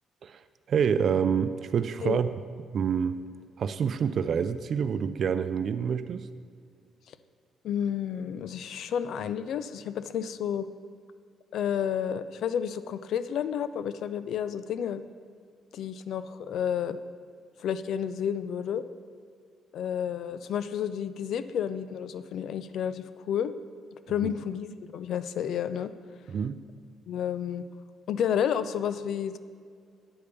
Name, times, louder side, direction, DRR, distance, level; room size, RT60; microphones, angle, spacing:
voice 1, 0.7-2.3 2.7-3.2 3.6-6.3 24.2-24.3 26.3-26.6, right 7 dB, 60° right, 12 dB, 0.4 m, -27 dB
voice 2, 7.6-10.7 11.5-15.0 15.7-17.0 17.6-18.8 19.7-23.5 24.1-25.9 27.1-27.6 28.1-29.4, left 8 dB, 75° left, 13 dB, 0.4 m, -31 dB
9.6 x 5.1 x 6.9 m, 2.2 s
cardioid pair, 90°, 0 cm